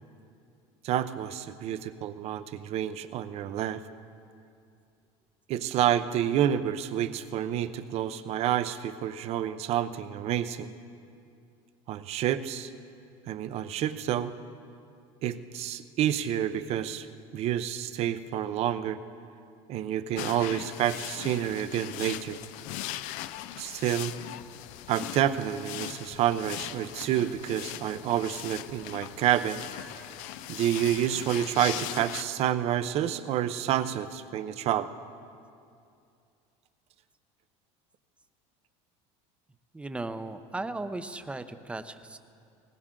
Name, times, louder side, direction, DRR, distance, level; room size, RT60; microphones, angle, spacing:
voice 1, 0.8-3.8 5.5-10.7 11.9-12.7 13.3-14.3 15.2-17.1 17.3-19.0 19.7-22.4 23.6-24.1 24.9-29.6 30.5-34.9, right 11 dB, 45° right, 12 dB, 0.7 m, -29 dB
sound 1, 20.2-32.2, left 14 dB, 65° left, 0.5 m, -39 dB
voice 2, 39.7-42.2, right 2 dB, 10° right, 10 dB, 0.7 m, -36 dB
20.5 x 18.5 x 3.8 m, 2.5 s
supercardioid pair, 130°, 14 cm